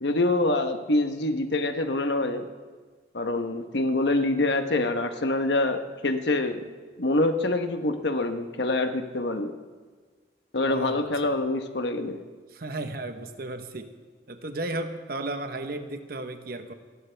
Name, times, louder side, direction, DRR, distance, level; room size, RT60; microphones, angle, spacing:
voice 1, 0.0-2.4 3.1-6.6 7.0-9.5 10.5-12.2, left 2 dB, 70° left, 7 dB, 1.1 m, -25 dB
voice 2, 10.6-11.0 12.5-13.9 14.3-16.7, right 2 dB, 55° right, 7 dB, 1.1 m, -34 dB
29.0 x 11.5 x 3.4 m, 1.5 s
head